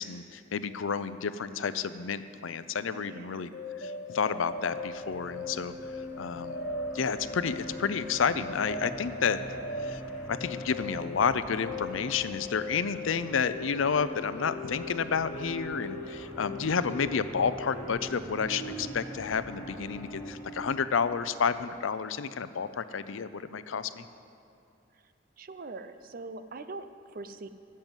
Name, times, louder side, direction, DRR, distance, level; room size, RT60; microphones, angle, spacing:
voice 1, 0.0-3.5 3.8-6.6 6.9-9.4 9.8-10.0 10.3-24.1, left 6 dB, 85° left, 13 dB, 0.5 m, -30 dB
voice 2, 2.9-3.5 24.9-25.0 25.4-27.5, right 3 dB, 45° right, 10 dB, 0.6 m, -43 dB
sound 1, 3.5-20.9, left 2 dB, 55° left, 1.0 m, -40 dB
sound 2, 4.0-21.0, equal, 5° right, 1.7 m, -45 dB
13.5 x 7.6 x 8.9 m, 2.6 s
head